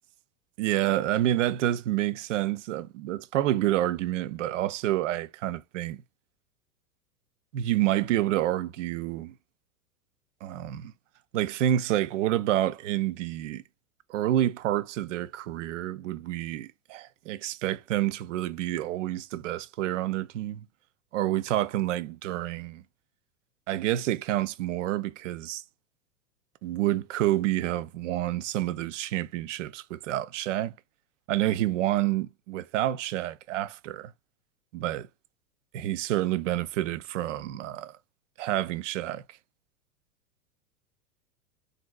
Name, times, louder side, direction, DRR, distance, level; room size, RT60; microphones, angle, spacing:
voice 1, 0.6-6.0 7.5-9.3 10.4-10.9 11.3-13.6 14.1-20.6 21.1-22.8 23.7-25.6 26.6-30.7 31.3-34.1 34.7-35.1 35.7-37.9 38.4-39.2, right 13 dB, 55° right, 0.5 m, -28 dB
3.7 x 2.6 x 2.3 m
hypercardioid pair, 100°, 45 cm